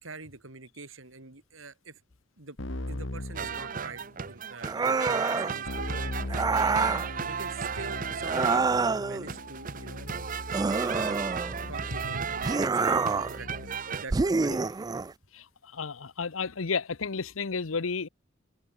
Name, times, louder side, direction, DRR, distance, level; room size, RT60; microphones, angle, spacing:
voice 1, 0.0-2.0 2.4-2.6 2.9-6.9 7.3-10.1 10.7-11.2 11.5-14.7, right 3 dB, 80° right, 3.7 m, -45 dB
Keyboard (musical), 2.6-4.3 5.7-14.0, left 1 dB, 65° left, 2.3 m, -40 dB
sound 1, 3.4-8.7 9.3-14.1, right 6 dB, 40° right, 0.8 m, -35 dB
sound 2, 4.6-5.6 6.3-7.1 8.2-9.3 10.5-11.7 12.4-13.4 14.1-15.1, right 4 dB, 20° right, 0.3 m, -27 dB
voice 2, 15.3-18.1, left 5 dB, 90° left, 0.9 m, -32 dB
head